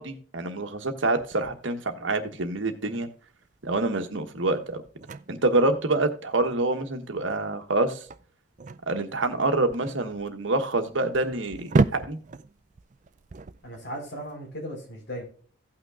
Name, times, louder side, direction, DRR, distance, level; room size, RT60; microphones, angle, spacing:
voice 1, 0.0-3.1 3.6-4.8 5.3-8.0 8.9-12.2, right 2 dB, 80° right, 7 dB, 1.3 m, -26 dB
sound 1, 1.2-14.3, right 3 dB, 40° right, 0.4 m, -34 dB
voice 2, 13.6-15.2, equal, 65° left, 0 dB, 4.4 m, -37 dB
16.5 x 5.9 x 2.5 m, 0.43 s
head